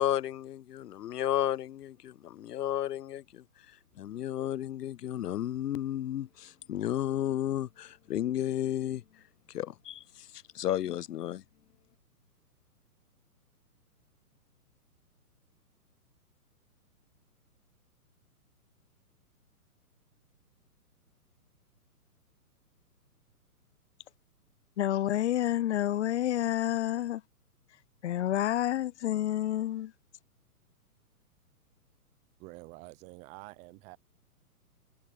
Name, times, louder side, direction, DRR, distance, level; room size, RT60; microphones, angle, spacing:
voice 1, 0.0-3.4 4.0-9.0 9.5-10.3 10.5-11.4, left 12 dB, 85° left, 0.5 m, -32 dB
voice 2, 24.8-27.2 28.0-29.9, left 12 dB, 50° left, 0.8 m, -29 dB
voice 3, 32.4-34.0, right 24 dB, 15° right, 0.7 m, -48 dB
hypercardioid pair, 130°, 46 cm